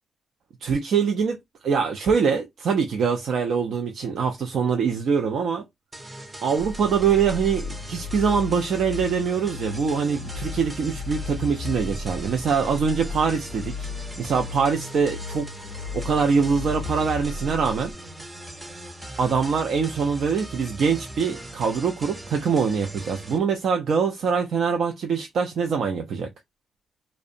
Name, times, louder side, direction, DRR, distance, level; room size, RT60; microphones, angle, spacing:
voice 1, 0.6-1.4 1.6-5.6 6.4-13.9 14.2-15.5 15.7-17.9 19.2-26.3, right 6 dB, 70° right, 0.4 m, -24 dB
sound 1, 5.9-23.4, right 1 dB, 20° right, 0.5 m, -40 dB
sound 2, 6.6-17.9, left 4 dB, 85° left, 0.4 m, -35 dB
2.4 x 2.1 x 2.6 m
cardioid pair, 95°, 0 cm